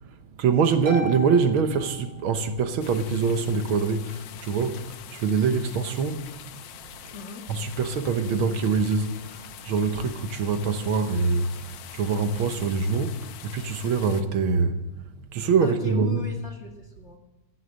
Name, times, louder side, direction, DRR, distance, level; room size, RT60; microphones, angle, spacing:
voice 1, 0.4-6.3 7.5-11.6 11.9-14.8 15.3-16.3, right 5 dB, 80° right, 1.9 m, -24 dB
Harp, 0.9-2.7, left 1 dB, 15° right, 2.4 m, -36 dB
sound 1, 2.8-14.2, left 11 dB, 70° left, 1.3 m, -44 dB
voice 2, 7.1-7.4 15.6-17.2, left 3 dB, 35° left, 2.0 m, -38 dB
14.0 x 10.5 x 7.4 m
omnidirectional pair, 2.3 m